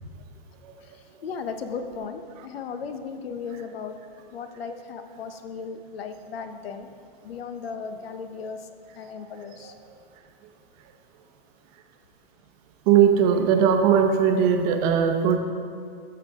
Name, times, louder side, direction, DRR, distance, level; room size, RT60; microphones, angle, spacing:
voice 1, 0.8-4.0 4.3-6.9 7.2-8.7 8.9-9.7, left 5 dB, 80° left, 8 dB, 0.9 m, -36 dB
voice 2, 12.9-15.4, right 7 dB, 40° right, 5 dB, 0.9 m, -19 dB
13.5 x 6.0 x 3.6 m, 2.3 s
hypercardioid pair, 145°, 29 cm